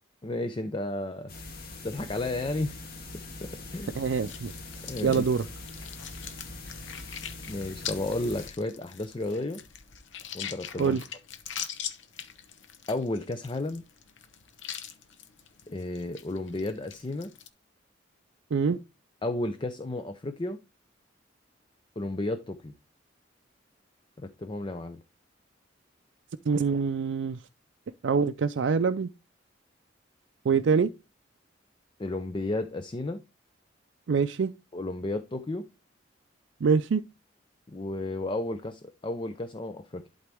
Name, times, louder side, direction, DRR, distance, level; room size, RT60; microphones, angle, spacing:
voice 1, 0.2-1.3 1.8-2.8 3.7-3.9 4.8-5.3 7.5-9.6 10.3-11.0 12.9-13.8 15.7-17.3 19.2-20.6 22.0-22.7 24.2-25.0 32.0-33.2 34.7-35.6 37.7-40.1, left 2 dB, 25° left, 0.5 m, -32 dB
sound 1, 1.3-8.5, left 2 dB, 55° left, 1.6 m, -42 dB
voice 2, 3.9-4.5 5.0-5.4 10.8-11.0 18.5-18.8 26.5-27.4 28.0-29.1 30.4-30.9 34.1-34.5 36.6-37.0, right 5 dB, 70° right, 0.4 m, -25 dB
sound 2, 4.3-17.5, left 8 dB, 80° left, 1.0 m, -42 dB
11.5 x 4.0 x 3.4 m
head